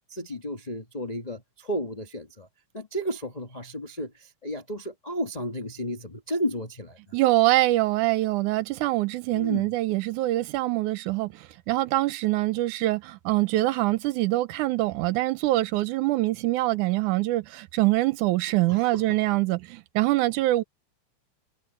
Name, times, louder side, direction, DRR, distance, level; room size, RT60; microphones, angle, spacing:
voice 1, 0.1-2.5 2.7-7.0 9.3-9.7 18.7-19.2, equal, 45° left, 0.5 m, -33 dB
voice 2, 7.1-20.6, right 18 dB, 85° right, 2.2 m, -24 dB
omnidirectional pair, 3.4 m